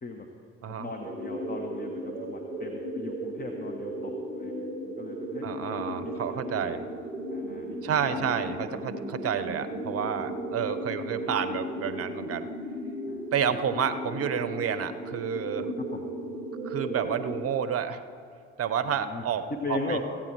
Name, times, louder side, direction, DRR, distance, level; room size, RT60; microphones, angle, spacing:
voice 1, 0.7-6.8 7.3-8.2 13.1-13.6 15.9-16.0 18.8-19.2 19.6-20.0, left 3 dB, 25° left, 2 dB, 1.2 m, -39 dB
sound 1, 1.0-17.4, right 1 dB, 90° right, 0.9 m, -35 dB
voice 2, 5.4-6.8 7.8-12.5 13.3-15.7 16.6-18.0 18.6-20.0, right 8 dB, 45° right, 12 dB, 0.8 m, -30 dB
15.0 x 8.9 x 4.7 m, 2.4 s
figure-of-eight pair, 50°, 34 cm